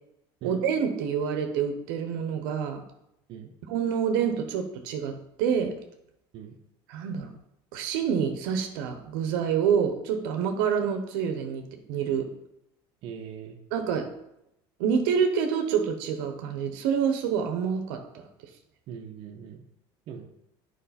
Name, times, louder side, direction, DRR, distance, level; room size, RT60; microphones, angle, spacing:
voice 1, 0.4-2.8 3.7-5.7 6.9-7.3 7.7-12.3 13.7-14.1 14.8-18.2, right 7 dB, 85° right, 6 dB, 0.9 m, -27 dB
voice 2, 13.0-13.6 18.9-19.6 20.1-20.3, right 7 dB, 55° right, 1 dB, 0.8 m, -41 dB
8.0 x 5.0 x 4.2 m, 0.82 s
cardioid pair, 130°, 11 cm